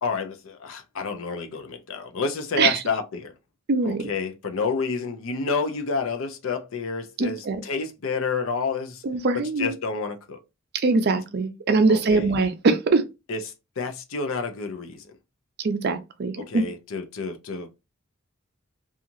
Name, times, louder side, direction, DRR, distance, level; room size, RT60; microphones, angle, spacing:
voice 1, 0.0-3.3 3.8-9.0 9.6-10.4 11.9-12.3 13.3-15.1 16.4-17.7, left 4 dB, 70° left, 0.5 m, -29 dB
voice 2, 3.7-4.1 7.2-7.6 9.0-9.7 10.8-13.0 15.6-16.6, right 3 dB, 50° right, 0.5 m, -22 dB
2.8 x 2.4 x 2.5 m
head